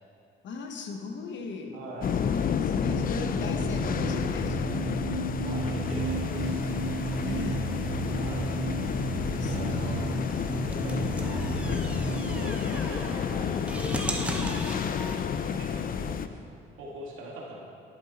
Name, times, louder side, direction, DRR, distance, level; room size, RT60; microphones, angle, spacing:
voice 1, 0.4-1.8 2.2-4.8 7.2-7.7 9.0-10.5, left 4 dB, 65° left, 4 dB, 1.0 m, -38 dB
voice 2, 1.7-2.1 5.4-6.7 8.1-8.5 9.5-10.3 10.6-12.0 12.3-14.6 15.2-16.4 16.8-17.6, right 1 dB, 80° right, -3 dB, 2.1 m, -41 dB
sound 1, 2.0-16.3, left 7 dB, 45° left, 0.5 m, -30 dB
sound 2, 2.8-12.5, right 4 dB, 35° right, 0.6 m, -34 dB
sound 3, 5.7-15.2, right 1 dB, 5° right, 1.1 m, -40 dB
12.0 x 8.0 x 4.2 m, 2.4 s
cardioid pair, 90°, 20 cm